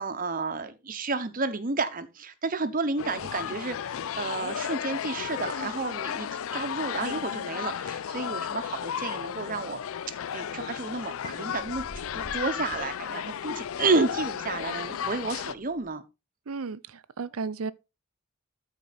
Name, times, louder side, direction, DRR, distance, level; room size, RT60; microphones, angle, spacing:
voice 1, 0.0-9.8 10.3-11.9 12.1-16.0, right 3 dB, 40° right, 0.9 m, -31 dB
sound 1, 3.0-15.6, left 8 dB, 75° left, 0.4 m, -34 dB
Fan switched on, 10.0-10.3 11.4-15.9, left 1 dB, 50° left, 2.7 m, -51 dB
voice 2, 16.5-17.7, right 4 dB, 90° right, 0.6 m, -34 dB
13.5 x 4.6 x 4.1 m
head